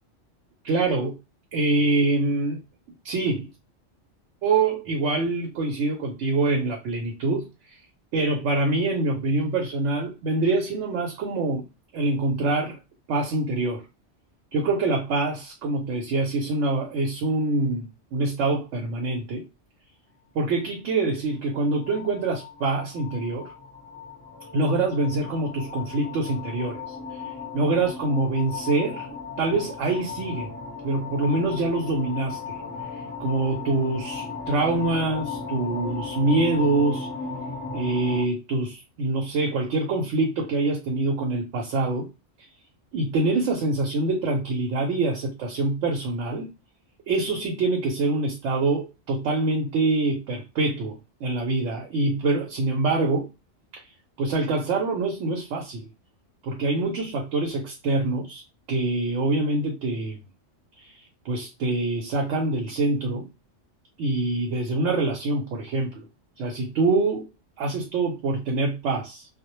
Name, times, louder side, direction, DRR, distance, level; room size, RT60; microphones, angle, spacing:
voice 1, 0.6-1.2 1.5-2.6 3.0-3.5 4.4-7.8 8.1-11.7 11.9-12.8 13.1-13.8 14.5-19.4 20.3-23.5 24.5-26.8 27.1-29.1 29.4-30.5 30.8-32.6 33.2-37.1 37.7-42.1 42.9-46.5 47.1-53.3 53.7-53.8 54.2-55.9 56.4-58.4 58.7-60.2 60.8-61.0 61.2-63.3 64.0-66.0 66.4-67.3 67.6-69.3, right 2 dB, 85° right, 0.9 m, -25 dB
sound 1, 21.3-38.2, left 4 dB, 20° left, 0.8 m, -36 dB
2.2 x 2.0 x 2.9 m
omnidirectional pair, 1.2 m